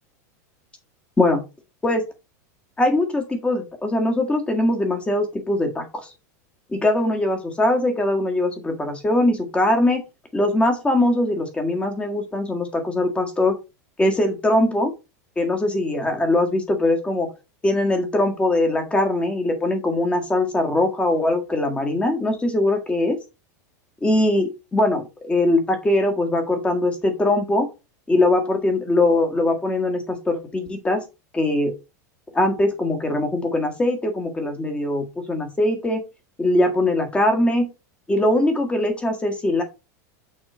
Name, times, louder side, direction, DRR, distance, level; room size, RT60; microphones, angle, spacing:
voice 1, 2.8-6.1 6.7-10.0 10.3-13.6 14.0-14.9 15.4-17.3 17.6-23.2 24.0-27.7 28.1-31.0 31.3-31.7 32.3-36.0 36.4-37.7 38.1-39.6, left 1 dB, 10° left, 4 dB, 1.6 m, -21 dB
6.4 x 3.6 x 4.4 m, 0.27 s
supercardioid pair, 125°, 9 cm